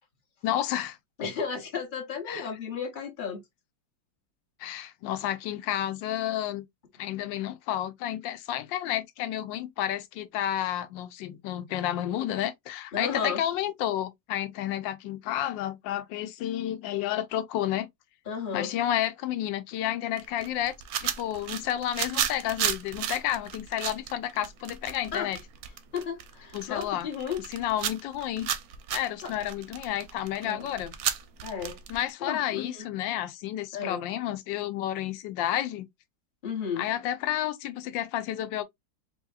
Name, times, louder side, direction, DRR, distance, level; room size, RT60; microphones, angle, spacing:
voice 1, 0.4-1.0 2.3-2.5 4.6-6.6 7.0-17.9 18.5-25.4 26.5-27.1 27.5-28.5 28.9-30.9 31.9-35.9 36.8-38.6, left 12 dB, 80° left, 1.3 m, -31 dB
voice 2, 1.2-3.4 12.9-13.4 18.3-18.7 25.1-25.3 25.9-27.4 29.2-29.3 30.4-30.7 31.4-31.8 32.2-32.9 33.7-34.0 36.4-36.9, left 6 dB, 40° left, 0.8 m, -33 dB
sound 1, 20.2-32.1, right 9 dB, 65° right, 0.9 m, -33 dB
4.5 x 2.8 x 2.3 m
omnidirectional pair, 2.0 m